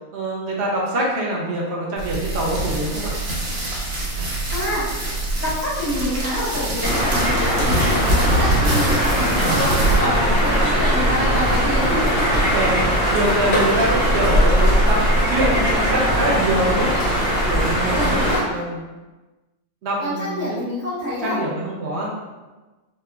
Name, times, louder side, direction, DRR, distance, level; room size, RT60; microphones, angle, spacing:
voice 1, 0.1-3.2 7.6-7.9 9.4-9.6 12.4-16.9 17.5-18.8 19.8-20.6 21.2-22.1, right 1 dB, 60° right, -2 dB, 0.8 m, -24 dB
sound 1, 2.0-12.9, right 2 dB, 85° right, 1.4 m, -25 dB
voice 2, 4.1-5.0 5.4-12.4 17.9-18.4 20.0-21.4, left 1 dB, 75° left, -15 dB, 2.0 m, -27 dB
sound 2, 6.8-18.4, equal, 50° left, 1.2 m, -20 dB
4.1 x 2.1 x 2.3 m, 1.2 s
omnidirectional pair, 1.4 m